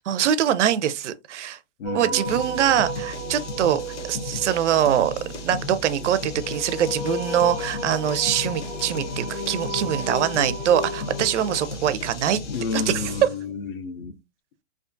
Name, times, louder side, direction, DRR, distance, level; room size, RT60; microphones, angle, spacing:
voice 1, 0.1-1.6 1.9-3.8 4.1-5.1 5.4-12.4 12.7-12.9, right 10 dB, 85° right, 0.5 m, -23 dB
voice 2, 1.8-2.4 12.5-14.1, left 5 dB, 55° left, 0.4 m, -31 dB
sound 1, 1.8-11.7, equal, 15° right, 0.4 m, -34 dB
sound 2, 2.2-13.4, left 2 dB, 85° left, 0.8 m, -35 dB
2.4 x 2.3 x 2.5 m
hypercardioid pair, 180°, 35 cm